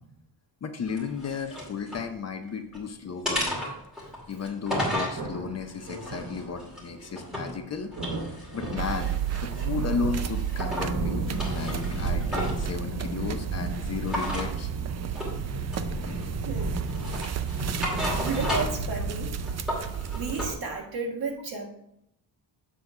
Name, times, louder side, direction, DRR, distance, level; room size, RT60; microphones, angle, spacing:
voice 1, 0.6-3.7 4.3-7.9 8.5-11.2 11.5-14.7 15.9-16.1, left 5 dB, 35° left, 5 dB, 0.7 m, -34 dB
sound 1, 0.9-2.1 2.5-2.8 3.2-5.2 5.8-7.6 7.9-9.7 10.1-10.9 11.3-12.7 14.0-14.5 15.1-15.4 15.7-16.4 16.9-18.9 19.2-20.5, equal, ahead, 2.3 m, -33 dB
sound 2, 5.1-19.6, right 1 dB, 80° right, 3.3 m, -35 dB
sound 3, 8.8-20.5, right 8 dB, 40° right, 0.4 m, -32 dB
voice 2, 16.0-16.7 18.2-19.3 20.1-21.7, right 4 dB, 55° right, 2 dB, 1.7 m, -33 dB
7.7 x 4.0 x 5.8 m, 0.76 s
wide cardioid pair, 170°, 44 cm